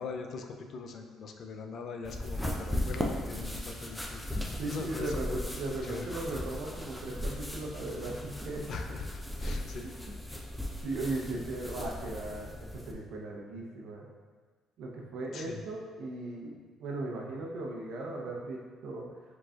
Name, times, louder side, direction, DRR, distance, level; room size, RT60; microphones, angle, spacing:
voice 1, 0.0-6.1 8.7-9.0 9.4-9.9 15.3-15.6, left 4 dB, 55° left, 4 dB, 0.4 m, -41 dB
sound 1, 2.0-12.9, left 1 dB, 5° left, 0.5 m, -37 dB
voice 2, 4.6-8.7 10.8-14.0 14.8-19.1, right 2 dB, 75° right, -1 dB, 0.7 m, -37 dB
4.9 x 3.9 x 2.4 m, 1.5 s
cardioid pair, 105°, 0 cm